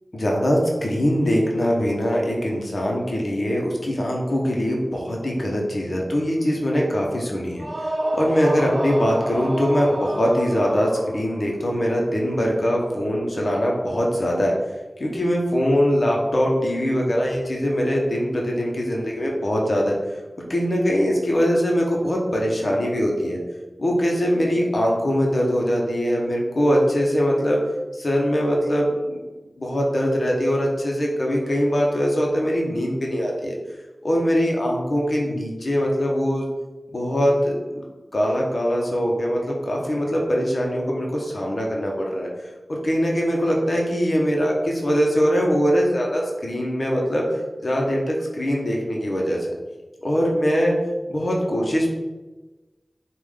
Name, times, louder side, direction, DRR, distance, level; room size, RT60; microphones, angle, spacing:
voice 1, 0.1-7.6 8.1-14.5 15.0-19.9 20.5-23.4 23.8-27.6 28.0-29.2 29.6-33.6 34.0-36.4 36.9-37.8 38.1-42.3 42.7-47.2 47.6-49.5 50.0-50.7 51.1-51.9, equal, 55° left, -2 dB, 0.9 m, -22 dB
sound 1, 7.5-11.5, right 1 dB, 50° right, 0.5 m, -29 dB
5.1 x 2.5 x 3.7 m, 1.1 s
wide cardioid pair, 70°, 0 cm